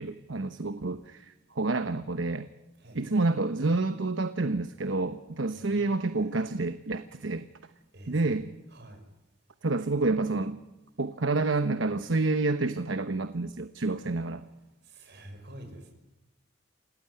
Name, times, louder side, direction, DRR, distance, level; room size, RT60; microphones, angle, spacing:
voice 1, 0.0-2.5 2.9-7.4 8.1-8.5 9.6-10.6 11.0-14.4, right 3 dB, 75° right, 10 dB, 1.0 m, -28 dB
voice 2, 2.8-3.7 5.5-6.3 7.9-8.3 8.7-9.0 14.8-15.9, right 1 dB, 60° right, 6 dB, 6.2 m, -49 dB
27.5 x 18.5 x 9.8 m, 0.98 s
head